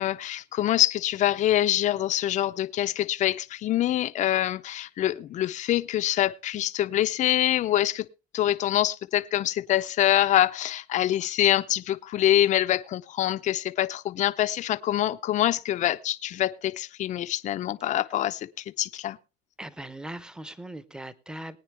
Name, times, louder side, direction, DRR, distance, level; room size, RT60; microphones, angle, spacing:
voice 1, 0.0-8.1 8.3-19.2, left 13 dB, 40° left, 0.6 m, -25 dB
voice 2, 19.6-21.6, right 1 dB, 5° right, 0.9 m, -39 dB
21.0 x 9.3 x 3.3 m
cardioid pair, 130°, 19 cm